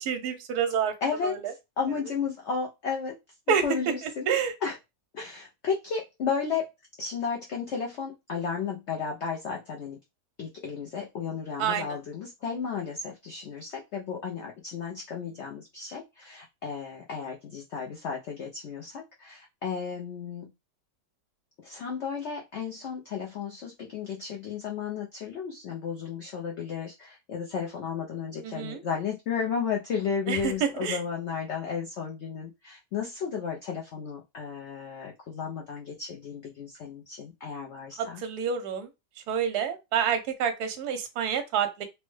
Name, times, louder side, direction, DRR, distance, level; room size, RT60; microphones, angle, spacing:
voice 1, 0.0-0.9 1.2-1.5 3.5-3.6 4.3-4.5 11.6-12.0 28.4-28.8 30.3-31.0 38.0-38.9 39.3-41.9, right 7 dB, 70° right, 1.1 m, -28 dB
voice 2, 1.0-3.1 3.6-4.3 4.6-4.8 5.1-6.7 7.0-10.0 10.4-20.5 21.6-38.2, left 6 dB, 80° left, 0.6 m, -33 dB
3.2 x 2.1 x 3.1 m
omnidirectional pair, 1.8 m